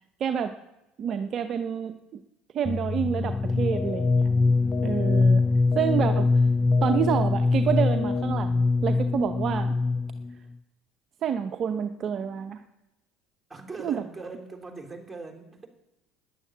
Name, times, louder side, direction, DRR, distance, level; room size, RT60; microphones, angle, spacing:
voice 1, 0.2-0.5 1.0-2.2 2.5-4.3 4.8-5.4 5.8-6.3 6.8-9.8 11.2-12.6 13.8-14.0, right 8 dB, 45° right, 8 dB, 0.8 m, -28 dB
sound 1, 2.6-10.3, left 3 dB, 20° left, 0.4 m, -23 dB
sound 2, 3.7-4.2 4.7-5.2 5.7-6.2 6.7-7.2 7.7-8.2, left 12 dB, 35° left, 1.2 m, -36 dB
voice 2, 4.6-5.3 13.5-15.7, right 3 dB, 15° right, 3 dB, 3.6 m, -42 dB
11.0 x 10.0 x 8.8 m, 0.98 s
hypercardioid pair, 70°, 0 cm